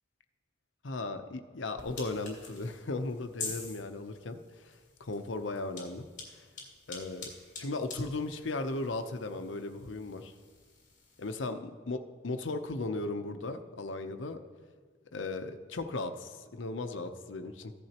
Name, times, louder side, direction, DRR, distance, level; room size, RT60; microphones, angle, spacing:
voice 1, 0.8-6.1 6.4-6.5 6.9-7.3 7.6-10.3 11.2-14.4 15.1-17.7, left 2 dB, 85° left, 7 dB, 0.7 m, -36 dB
sound 1, 1.8-11.5, left 3 dB, 40° left, 2.8 m, -47 dB
15.0 x 11.0 x 2.9 m, 1.5 s
head